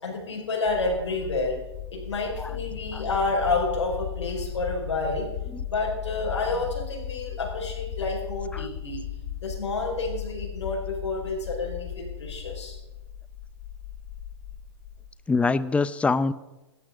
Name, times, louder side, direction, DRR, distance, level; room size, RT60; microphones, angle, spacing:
voice 1, 0.0-1.6 1.9-5.3 5.7-9.0 9.4-12.8, left 3 dB, 85° left, -2 dB, 5.1 m, -29 dB
sound 1, 0.7-15.1, left 9 dB, 60° left, 4.6 m, -37 dB
voice 2, 15.3-16.3, left 4 dB, 10° left, 16 dB, 0.6 m, -24 dB
17.0 x 12.5 x 5.2 m, 1.0 s
hypercardioid pair, 125°, 14 cm